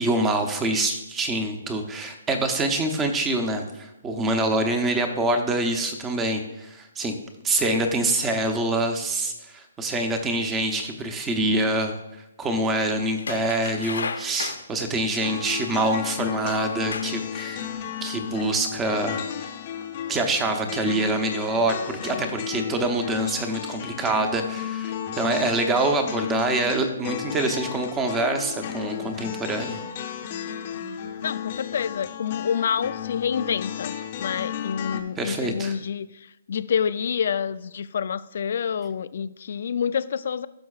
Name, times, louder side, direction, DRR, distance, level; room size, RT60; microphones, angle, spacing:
voice 1, 0.0-7.1 7.4-11.9 12.4-17.7 18.0-19.2 20.1-29.8 35.2-35.7, right 2 dB, 10° right, 5 dB, 0.8 m, -25 dB
sound 1, 13.2-14.7 15.8-15.9 16.6-17.3 17.7-17.8, left 5 dB, 85° left, 0.8 m, -33 dB
sound 2, 15.2-35.0, left 9 dB, 35° left, 0.8 m, -33 dB
voice 2, 31.2-40.5, left 7 dB, 60° left, 15 dB, 0.4 m, -28 dB
15.5 x 6.2 x 2.4 m, 0.93 s
hypercardioid pair, 160°, 0 cm